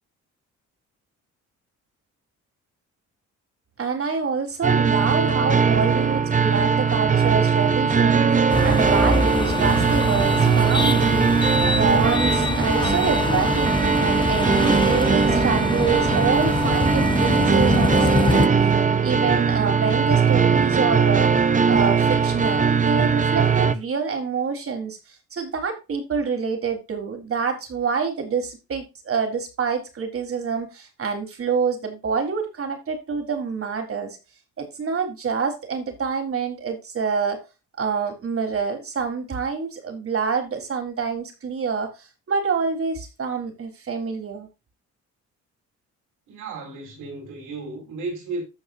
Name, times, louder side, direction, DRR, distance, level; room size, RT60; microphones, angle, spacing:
voice 1, 3.8-18.8 19.0-34.2 34.6-37.4 37.8-44.5, right 5 dB, 45° right, 4.1 m, -27 dB
sound 1, 4.6-23.8, right 5 dB, 25° right, 1.0 m, -20 dB
sound 2, 8.5-18.5, left 3 dB, 15° left, 0.8 m, -25 dB
voice 2, 46.3-48.4, right 3 dB, 90° right, 5.4 m, -34 dB
15.0 x 5.3 x 2.6 m
cardioid pair, 90°, 30 cm